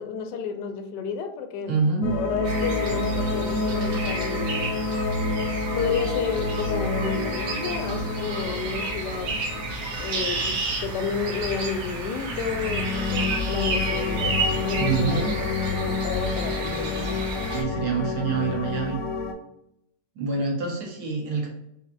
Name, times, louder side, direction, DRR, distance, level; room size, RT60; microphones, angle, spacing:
voice 1, 0.0-1.8 2.1-4.7 5.7-9.3 10.0-15.4 15.7-17.2, left 6 dB, 85° left, 1.2 m, -31 dB
voice 2, 1.7-2.1 14.8-15.4 17.5-19.0 20.1-21.5, right 4 dB, 70° right, 1.6 m, -26 dB
sound 1, 2.0-11.0 12.2-19.3, left 3 dB, 65° left, 0.9 m, -29 dB
sound 2, 2.4-17.6, right 3 dB, 90° right, 1.5 m, -31 dB
4.7 x 2.8 x 2.5 m
omnidirectional pair, 1.8 m